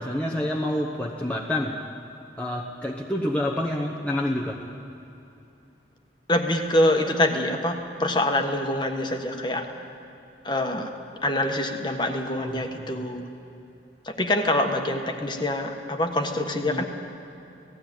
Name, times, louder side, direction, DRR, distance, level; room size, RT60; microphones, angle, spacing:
voice 1, 0.0-1.8 2.4-4.7 12.3-13.1 16.7-16.8, left 1 dB, 10° left, -2 dB, 1.0 m, -28 dB
voice 2, 6.3-9.7 10.4-10.9 11.2-13.3 14.0-16.8, left 1 dB, 25° left, 4 dB, 1.4 m, -25 dB
18.0 x 15.5 x 9.3 m, 2.9 s
head